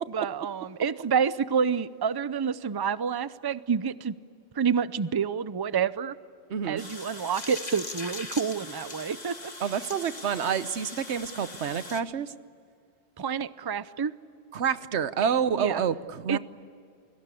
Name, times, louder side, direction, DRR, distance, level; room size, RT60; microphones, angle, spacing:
voice 1, 0.1-4.1 4.6-6.1 6.7-9.5 13.2-14.1 15.6-15.8 16.3-16.4, right 6 dB, 30° right, 15 dB, 0.5 m, -28 dB
voice 2, 6.5-6.8 9.6-12.3 14.5-16.4, right 7 dB, 90° right, 14 dB, 1.2 m, -28 dB
sound 1, 6.8-12.0, left 2 dB, 40° left, 1.8 m, -40 dB
29.5 x 22.5 x 8.4 m, 2.4 s
omnidirectional pair, 1.1 m